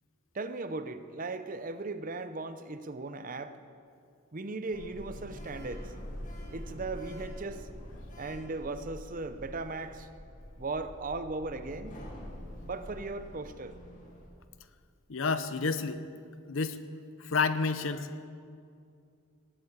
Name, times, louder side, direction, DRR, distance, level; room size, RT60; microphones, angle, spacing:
voice 1, 0.3-3.6 4.3-5.9 6.5-7.7 8.2-10.1 10.6-12.0 12.6-13.8, right 3 dB, 40° right, 11 dB, 0.7 m, -37 dB
Sliding door, 4.7-14.3, equal, 40° left, 2.3 m, -45 dB
voice 2, 15.1-16.0 16.5-16.8 17.2-18.3, left 4 dB, 70° left, 12 dB, 0.8 m, -30 dB
18.5 x 8.5 x 8.1 m, 2.4 s
head